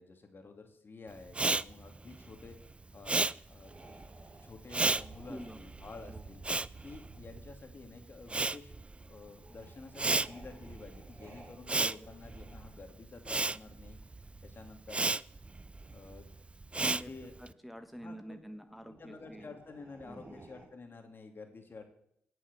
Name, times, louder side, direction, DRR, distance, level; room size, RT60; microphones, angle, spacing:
voice 1, 0.0-2.6 2.9-3.7 4.4-6.4 6.8-8.7 9.0-14.0 14.4-15.1 15.9-16.3 16.9-17.3 18.0-18.4 18.8-21.8, left 3 dB, 50° left, 5 dB, 2.6 m, -50 dB
Respiratory sounds, 1.3-7.8 8.0-17.5, right 3 dB, 25° right, 0.4 m, -34 dB
sound 1, 3.6-17.2 17.8-18.2 18.8-20.7, right 3 dB, 45° right, 6.3 m, -55 dB
voice 2, 5.3-5.6 6.1-6.2 11.7-11.9 16.7-17.1 17.4-19.6 20.1-20.4, equal, ahead, 6 dB, 1.4 m, -46 dB
17.0 x 6.3 x 6.9 m, 0.73 s
supercardioid pair, 50°, 5 cm